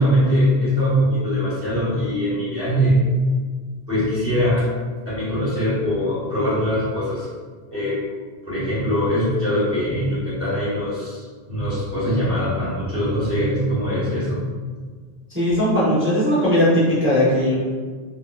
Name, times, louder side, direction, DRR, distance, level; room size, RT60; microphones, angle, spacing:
voice 1, 0.0-3.0 3.9-4.7 5.0-7.3 7.7-8.0 8.5-14.4 14.7-14.8, equal, 15° left, -10 dB, 1.2 m, -22 dB
voice 2, 15.3-17.5, equal, 15° right, -11 dB, 0.8 m, -18 dB
3.5 x 2.6 x 2.3 m, 1.5 s
omnidirectional pair, 1.0 m